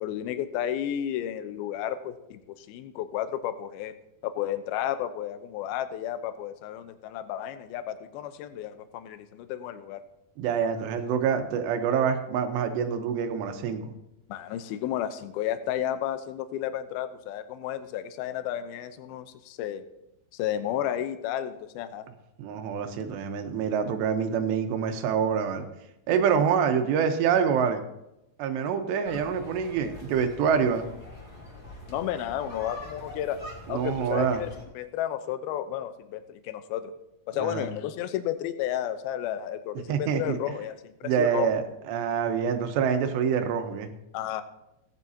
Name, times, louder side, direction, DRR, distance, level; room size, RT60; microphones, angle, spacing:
voice 1, 0.0-3.9 4.2-10.0 14.3-19.8 20.3-22.1 31.9-33.4 33.7-36.9 37.3-41.5 44.1-44.4, left 11 dB, 75° left, 10 dB, 2.5 m, -32 dB
voice 2, 10.4-13.9 22.4-25.6 26.1-27.8 28.4-30.9 33.7-34.4 37.4-37.7 39.9-40.4 41.0-43.9, right 7 dB, 85° right, 6 dB, 3.2 m, -26 dB
sound 1, 29.0-34.6, left 1 dB, 15° left, 2.2 m, -44 dB
17.5 x 10.5 x 2.8 m, 0.87 s
omnidirectional pair, 4.8 m